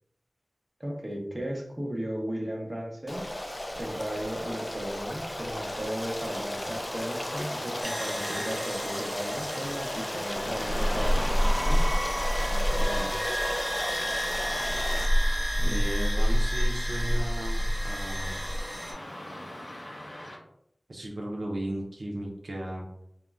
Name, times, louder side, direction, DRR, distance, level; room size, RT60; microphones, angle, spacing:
voice 1, 0.8-3.2 3.7-11.4 11.6-12.1 12.4-13.2 15.5-15.9, equal, 30° right, -1 dB, 0.7 m, -36 dB
Stream, 3.1-15.0, left 1 dB, 35° left, 0.3 m, -35 dB
Car passing by / Traffic noise roadway noise, 5.1-20.4, left 1 dB, 85° left, 0.5 m, -41 dB
sound 1, 7.8-18.9, equal, 15° left, 1.0 m, -28 dB
voice 2, 15.6-18.4 20.9-22.9, right 1 dB, 80° right, -1 dB, 0.4 m, -35 dB
3.6 x 2.0 x 2.3 m, 0.77 s
wide cardioid pair, 50°, 0 cm